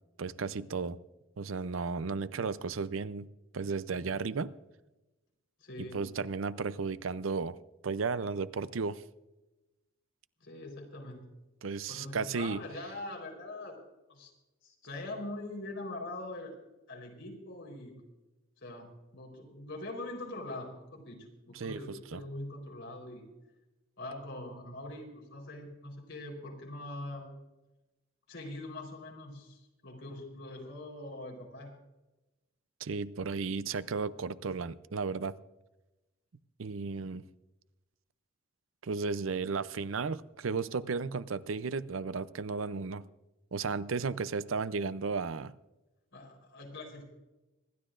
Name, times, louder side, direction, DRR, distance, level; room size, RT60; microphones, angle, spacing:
voice 1, 0.2-1.0 1.4-3.3 3.5-4.5 5.8-7.6 7.8-9.0 11.6-12.6 21.5-22.2 32.8-35.4 36.6-37.2 38.8-43.0 43.5-45.5, right 4 dB, 75° right, 0.6 m, -34 dB
voice 2, 5.6-6.1 10.4-11.2 11.9-13.8 14.1-14.3 14.6-16.6 16.9-18.0 18.6-23.2 24.0-27.4 28.3-31.7 46.1-47.0, left 2 dB, 65° left, 4.1 m, -43 dB
26.0 x 12.0 x 2.5 m
head